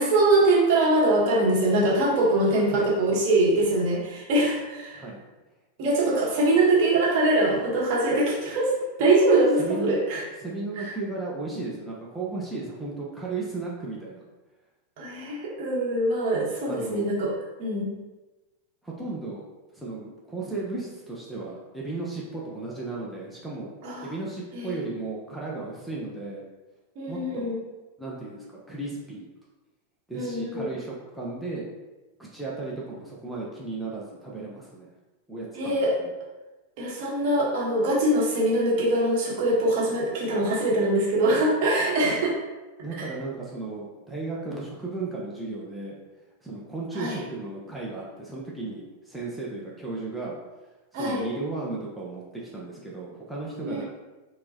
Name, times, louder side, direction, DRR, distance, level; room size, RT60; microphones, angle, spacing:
voice 1, 0.0-5.0 5.8-8.7 9.0-10.2 10.8-10.9 15.0-17.3 17.6-17.9 23.8-24.1 24.5-24.8 27.0-27.6 30.1-30.7 35.5-35.9 36.8-42.3 47.0-47.2 50.9-51.2 53.6-53.8, right 2 dB, 45° right, -4 dB, 0.9 m, -23 dB
voice 2, 9.6-10.0 10.4-14.2 16.7-17.1 18.8-19.4 19.7-23.7 24.0-26.4 27.1-27.5 28.0-29.3 30.1-31.7 32.2-34.9 35.3-35.8 36.0-36.1 42.8-46.0 46.4-50.4 50.9-53.8, right 3 dB, ahead, -6 dB, 0.6 m, -35 dB
4.4 x 2.1 x 2.6 m, 1.1 s
figure-of-eight pair, 90°, 0 cm